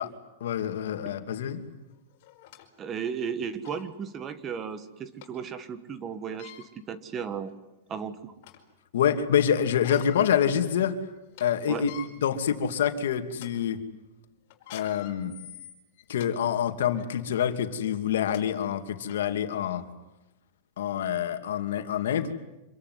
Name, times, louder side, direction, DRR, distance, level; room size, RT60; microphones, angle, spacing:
voice 1, 0.4-1.6 8.9-10.9 11.4-11.9 12.2-13.8 14.7-15.3 16.1-19.8 20.8-22.3, left 9 dB, 85° left, 7 dB, 2.7 m, -26 dB
sound 1, 1.5-1.6 2.2-2.7 3.2-3.3 3.6-3.9 5.2-5.3 6.2-6.7 7.4-7.5 8.0-8.7 9.6-10.3 10.7-10.8 11.2-11.4 11.8-12.1 12.7-12.9 13.3-13.5 14.5-16.3 16.9-17.1 17.9-18.0 18.3-18.4 19.1-19.2, left 13 dB, 55° left, 5.1 m, -46 dB
voice 2, 2.8-7.5 7.9-8.3 11.7-11.9, right 7 dB, 20° right, 13 dB, 1.5 m, -35 dB
26.5 x 23.0 x 9.7 m, 0.95 s
supercardioid pair, 155°, 0 cm